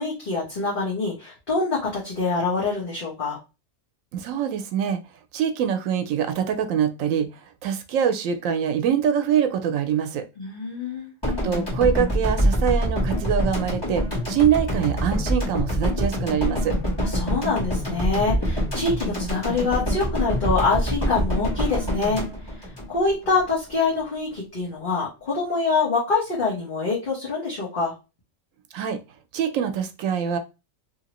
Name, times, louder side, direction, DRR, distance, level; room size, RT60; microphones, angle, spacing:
voice 1, 0.0-3.4 10.4-11.1 17.0-27.9, left 4 dB, 45° left, -6 dB, 1.2 m, -25 dB
voice 2, 4.1-5.0 5.3-10.3 11.4-16.8 28.7-29.0 29.3-30.4, right 8 dB, 90° right, 8 dB, 1.0 m, -24 dB
sound 1, 11.2-23.4, equal, 20° left, 1.3 m, -25 dB
2.8 x 2.8 x 2.9 m, 0.27 s
omnidirectional pair, 1.3 m